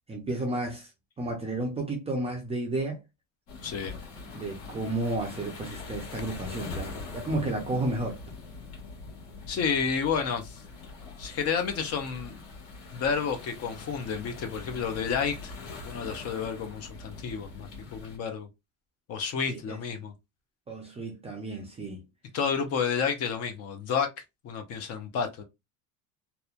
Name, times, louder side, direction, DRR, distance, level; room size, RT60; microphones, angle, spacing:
voice 1, 0.1-0.9 1.2-3.0 4.3-8.2 19.5-19.8 20.7-22.0, right 2 dB, 15° right, 0.4 m, -32 dB
sound 1, 3.5-18.2, left 3 dB, 65° left, 1.4 m, -43 dB
voice 2, 3.6-4.0 9.5-10.6 11.2-12.4 12.9-15.5 15.8-18.5 19.1-20.1 22.3-24.1 24.4-25.4, left 6 dB, 40° left, 0.5 m, -30 dB
2.9 x 2.1 x 2.3 m
cardioid pair, 155°, 40 cm